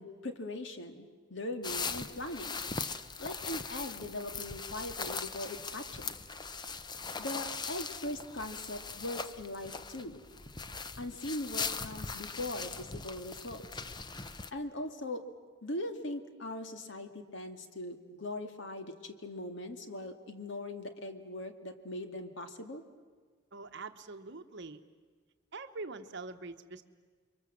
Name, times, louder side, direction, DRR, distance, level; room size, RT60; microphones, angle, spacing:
voice 1, 0.0-2.6 3.2-6.1 7.2-10.2 11.0-13.6 14.5-15.3 15.6-22.8, left 1 dB, 60° left, 7 dB, 2.0 m, -40 dB
sound 1, 1.6-14.5, left 4 dB, 20° left, 0.7 m, -40 dB
voice 2, 23.5-24.8 25.5-26.8, right 3 dB, 60° right, 8 dB, 1.1 m, -44 dB
29.5 x 23.5 x 7.5 m, 1.5 s
head